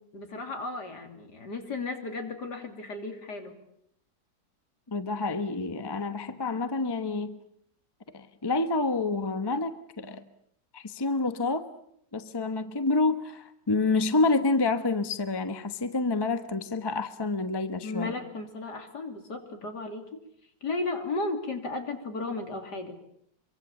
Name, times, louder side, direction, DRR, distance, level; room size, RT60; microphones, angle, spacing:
voice 1, 0.1-3.6 17.8-20.0 20.6-23.0, left 3 dB, 65° left, 5 dB, 3.5 m, -34 dB
voice 2, 4.9-7.4 8.1-10.2 10.7-11.7 12.1-18.1, left 3 dB, 15° left, 10 dB, 0.9 m, -28 dB
25.5 x 24.0 x 7.2 m, 0.71 s
omnidirectional pair, 1.9 m